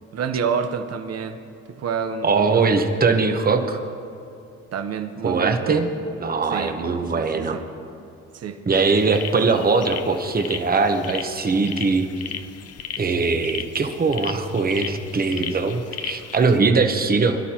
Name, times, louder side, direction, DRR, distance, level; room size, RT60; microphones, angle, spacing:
voice 1, 0.1-1.4 1.7-2.9 4.7-5.8 6.5-6.8 7.1-7.6 8.3-8.6, right 6 dB, 55° right, 8 dB, 0.9 m, -28 dB
voice 2, 2.2-3.8 5.2-5.9 6.2-7.6 8.7-12.1 13.0-17.4, right 4 dB, 30° right, 6 dB, 1.1 m, -21 dB
sound 1, 8.7-16.6, left 8 dB, 55° left, 0.7 m, -36 dB
23.0 x 11.5 x 3.0 m, 2.6 s
cardioid pair, 90°, 30 cm